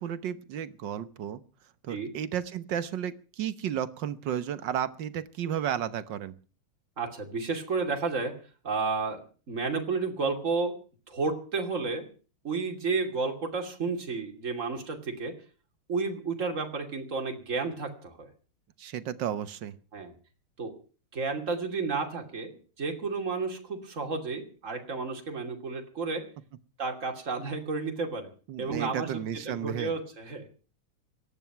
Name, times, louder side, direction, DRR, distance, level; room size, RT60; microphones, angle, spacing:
voice 1, 0.0-1.4 1.8-6.4 18.8-19.8 28.5-29.9, right 9 dB, 60° right, 14 dB, 1.6 m, -33 dB
voice 2, 7.0-8.3 8.6-10.8 11.1-12.1 12.4-15.3 15.9-18.3 19.9-20.1 20.6-20.7 21.1-26.3 26.8-28.3 28.6-29.1 29.5-30.5, right 4 dB, 35° right, 3 dB, 3.0 m, -32 dB
18.0 x 12.5 x 5.9 m, 0.39 s
omnidirectional pair, 2.4 m